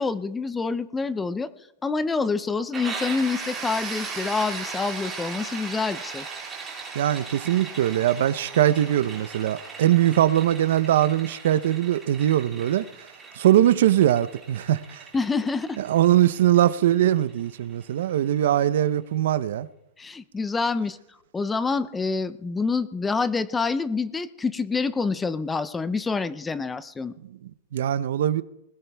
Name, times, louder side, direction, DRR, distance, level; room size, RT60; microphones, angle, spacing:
voice 1, 0.0-1.5 1.8-6.2 15.1-15.8 20.0-21.0 21.3-27.1, left 4 dB, 10° left, 0.4 m, -27 dB
sound 1, 2.7-18.3, right 5 dB, 10° right, 3.8 m, -38 dB
Wind instrument woodwind instrument, 3.0-6.9, left 2 dB, 25° left, 2.0 m, -53 dB
voice 2, 6.9-12.8 13.4-15.0 15.8-19.7 27.2-28.4, right 12 dB, 65° right, 0.7 m, -21 dB
20.5 x 17.0 x 3.4 m
supercardioid pair, 175°, 0 cm